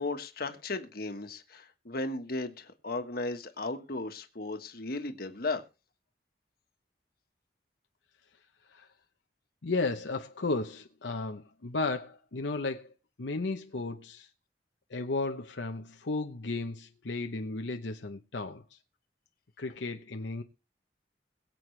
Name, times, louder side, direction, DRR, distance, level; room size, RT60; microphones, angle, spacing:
voice 1, 0.0-5.6, left 2 dB, 55° left, 1.4 m, -35 dB
voice 2, 9.6-12.9 13.2-14.3 14.9-18.8 19.6-20.4, left 3 dB, 85° left, 0.8 m, -34 dB
22.0 x 7.7 x 3.3 m
head